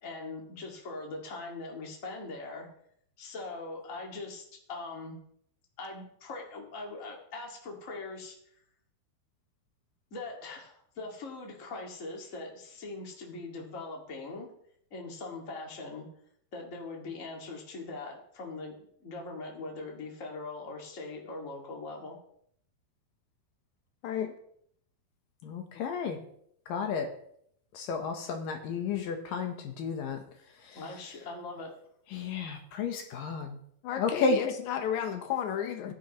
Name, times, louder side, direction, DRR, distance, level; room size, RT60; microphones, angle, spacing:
voice 1, 0.0-2.7 3.2-5.2 5.8-8.3 10.1-14.5 14.9-16.1 16.5-22.2 30.7-31.7, left 3 dB, 30° left, 0 dB, 1.6 m, -41 dB
voice 2, 25.4-26.2 26.7-27.2 27.7-30.2 30.6-30.8 32.1-33.6 34.0-34.4 35.9-36.0, left 4 dB, 70° left, 5 dB, 2.5 m, -32 dB
voice 3, 33.8-35.9, left 9 dB, 90° left, 6 dB, 1.6 m, -32 dB
15.5 x 10.5 x 3.1 m, 0.69 s
omnidirectional pair, 4.6 m